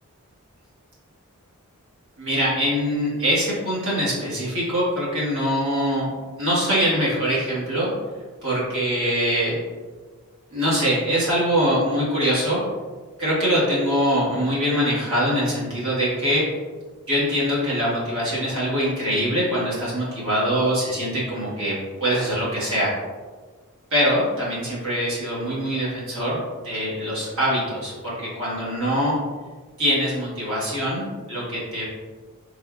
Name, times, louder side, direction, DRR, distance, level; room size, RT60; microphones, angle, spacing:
voice 1, 2.2-6.1 6.4-7.9 8.4-9.6 10.5-12.6 13.2-16.4 17.1-21.7 22.0-22.9 23.9-26.4 26.6-29.1 29.8-31.8, equal, 60° right, -8 dB, 1.2 m, -23 dB
3.5 x 2.2 x 2.3 m, 1.4 s
head